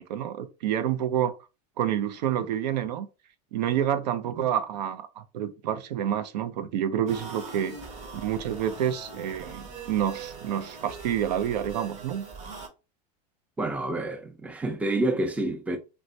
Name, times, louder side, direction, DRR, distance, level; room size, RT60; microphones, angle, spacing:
voice 1, 0.0-1.3 1.8-3.1 3.5-7.8 8.1-12.2, right 10 dB, 85° right, 0.5 m, -28 dB
sound 1, 7.1-12.7, right 4 dB, 30° right, 0.8 m, -41 dB
voice 2, 13.6-15.8, right 2 dB, 5° right, 0.4 m, -28 dB
3.1 x 2.2 x 2.6 m
supercardioid pair, 120°, 21 cm